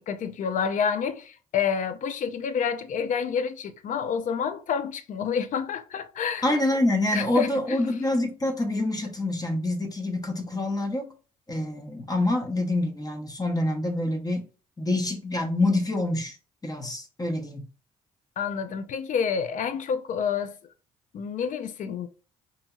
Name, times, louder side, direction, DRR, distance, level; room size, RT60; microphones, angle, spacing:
voice 1, 0.0-6.5 7.1-7.8 18.4-20.5 21.1-22.1, left 7 dB, 55° left, 0.4 m, -28 dB
voice 2, 6.4-11.1 11.5-14.5 14.8-16.4 16.6-17.6, left 1 dB, 25° left, 0.8 m, -26 dB
2.7 x 2.7 x 2.3 m
hypercardioid pair, 55°, 16 cm